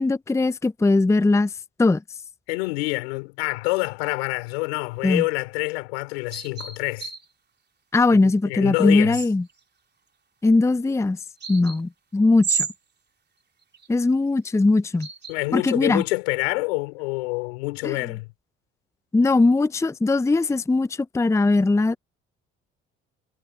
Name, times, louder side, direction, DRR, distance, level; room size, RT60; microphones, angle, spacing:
voice 1, 0.0-1.5 1.8-2.0 5.0-5.2 7.9-9.4 10.4-11.2 11.5-12.7 13.9-15.1 15.5-16.0 17.8-18.0 19.1-22.0, left 3 dB, 10° left, 0.6 m, -20 dB
voice 2, 2.5-7.1 8.1-9.2 15.3-18.3, left 26 dB, 85° left, 3.9 m, -27 dB
sound 1, 6.3-7.2 8.9-9.5 11.4-11.8 12.4-12.7 13.7-13.9 14.9-15.3 16.0-16.1, right 5 dB, 35° right, 3.6 m, -30 dB
hypercardioid pair, 60°, 30 cm